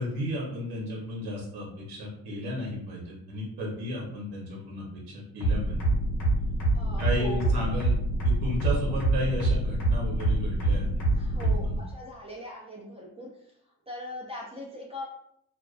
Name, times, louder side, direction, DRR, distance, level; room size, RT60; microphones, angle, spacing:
voice 1, 0.0-5.8 7.0-8.0 8.2-10.9 11.4-11.8, equal, 65° right, -2 dB, 0.8 m, -33 dB
sound 1, 5.4-11.8, right 2 dB, 60° left, 1.0 m, -25 dB
voice 2, 6.7-7.5 8.7-8.8 11.1-13.5 13.9-15.1, equal, 15° right, -4 dB, 0.3 m, -40 dB
2.3 x 2.2 x 2.3 m, 0.73 s
cardioid pair, 135°, 39 cm